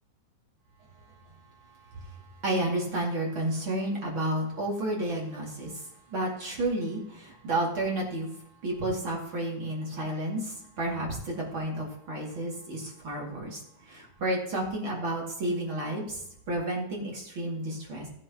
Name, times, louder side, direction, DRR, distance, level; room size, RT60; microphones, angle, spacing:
voice 1, 2.4-5.8 6.1-8.3 8.6-16.2 16.5-18.1, right 1 dB, 35° right, -3 dB, 2.2 m, -31 dB
16.0 x 8.7 x 2.9 m, 0.76 s
omnidirectional pair, 5.4 m